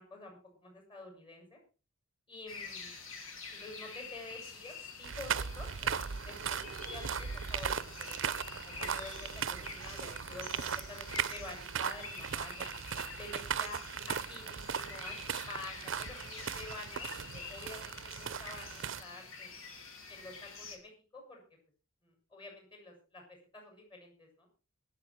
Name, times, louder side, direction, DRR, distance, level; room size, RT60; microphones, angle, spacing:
voice 1, 0.0-1.6 2.3-2.9 3.6-12.7 13.2-13.8 14.1-15.2 15.5-19.8 20.1-21.4 22.0-23.2 23.5-24.5, left 2 dB, 25° left, 3 dB, 6.7 m, -49 dB
sound 1, 2.5-20.8, left 4 dB, 85° left, 3.0 m, -48 dB
sound 2, 5.0-19.0, right 7 dB, 65° right, 0.6 m, -38 dB
23.5 x 8.2 x 4.6 m, 0.34 s
head